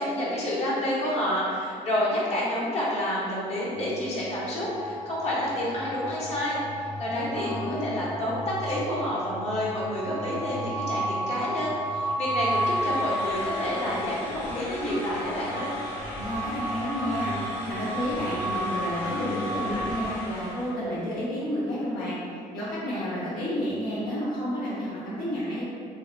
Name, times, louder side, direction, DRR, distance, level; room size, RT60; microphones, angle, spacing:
voice 1, 0.0-15.7, left 1 dB, 50° left, -7 dB, 0.7 m, -29 dB
sound 1, 3.4-20.0, equal, 35° right, 0.6 m, -33 dB
voice 2, 7.1-7.9 16.1-22.1 22.5-25.6, equal, 90° left, -10 dB, 0.6 m, -31 dB
sound 2, 12.4-20.8, left 1 dB, 75° left, 1.0 m, -38 dB
2.6 x 2.1 x 2.3 m, 2.4 s
cardioid pair, 105°, 15 cm